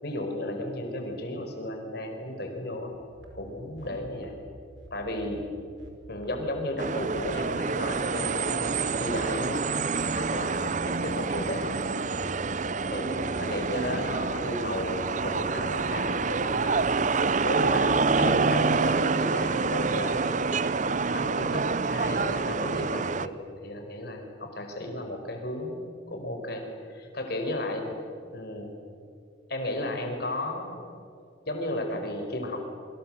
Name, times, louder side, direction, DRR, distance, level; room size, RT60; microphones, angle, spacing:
voice 1, 0.0-2.9 3.3-4.4 4.9-5.5 6.1-9.7 10.1-12.1 12.9-16.8 17.4-20.5 21.1-23.3 23.6-28.0 28.3-28.7 29.5-30.9 31.5-32.6, left 1 dB, 55° left, 3 dB, 5.2 m, -34 dB
sound 1, 2.9-20.1, right 1 dB, 85° right, 5.7 m, -52 dB
sound 2, 6.8-23.3, right 4 dB, 40° right, 0.7 m, -27 dB
28.5 x 24.5 x 7.8 m, 2.4 s
head